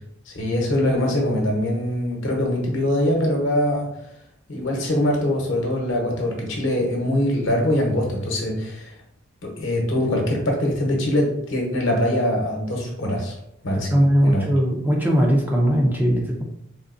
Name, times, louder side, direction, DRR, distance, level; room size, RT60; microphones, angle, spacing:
voice 1, 0.3-3.9 4.5-8.9 9.4-13.3 13.6-14.5, left 1 dB, 65° left, 0 dB, 0.9 m, -23 dB
voice 2, 13.9-16.4, equal, 10° right, -1 dB, 0.4 m, -19 dB
3.7 x 2.7 x 2.5 m, 0.79 s
head